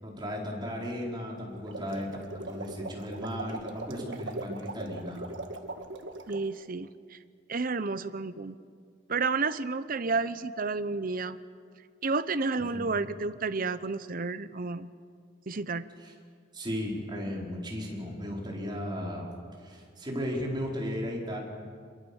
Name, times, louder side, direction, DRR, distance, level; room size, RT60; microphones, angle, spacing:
voice 1, 0.0-2.1 2.3-5.3 12.7-12.9 16.0-16.1 16.5-19.3 19.6-21.4, equal, 25° right, -2 dB, 5.1 m, -35 dB
sound 1, 1.5-6.5, right 2 dB, 75° right, 1.7 m, -40 dB
voice 2, 6.3-6.9 7.5-8.6 9.1-11.4 12.0-14.9 15.5-15.9, right 4 dB, 50° right, 13 dB, 0.8 m, -31 dB
26.5 x 22.5 x 7.2 m, 2.1 s
head